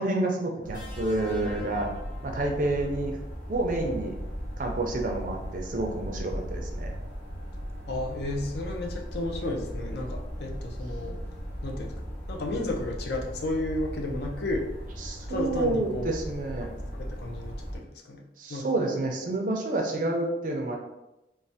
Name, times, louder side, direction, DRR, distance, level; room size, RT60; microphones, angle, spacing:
voice 1, 0.0-1.9 2.2-3.2 3.5-4.2 4.6-7.0 15.0-16.7 18.4-20.8, right 2 dB, 50° right, 2 dB, 0.4 m, -29 dB
sound 1, 0.6-17.8, equal, 10° left, 0.5 m, -37 dB
sound 2, 0.7-3.0 4.3-4.5, left 3 dB, 45° left, 1.0 m, -46 dB
voice 2, 7.9-11.2 11.6-14.7 15.3-16.1 16.9-18.2 18.5-18.7, left 2 dB, 65° left, 1 dB, 0.4 m, -33 dB
3.1 x 2.1 x 2.7 m, 0.93 s
head